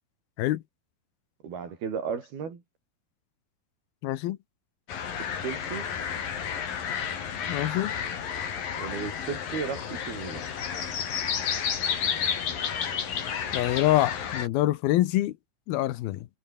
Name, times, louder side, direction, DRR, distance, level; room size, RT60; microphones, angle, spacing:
voice 1, 1.4-2.6 5.3-5.9 8.8-10.4, right 6 dB, 85° right, 6.2 m, -34 dB
voice 2, 4.0-4.4 7.5-7.9 13.5-15.3 15.7-16.3, left 15 dB, 90° left, 2.9 m, -25 dB
sound 1, 4.9-14.5, left 7 dB, 70° left, 4.7 m, -31 dB
omnidirectional pair, 4.3 m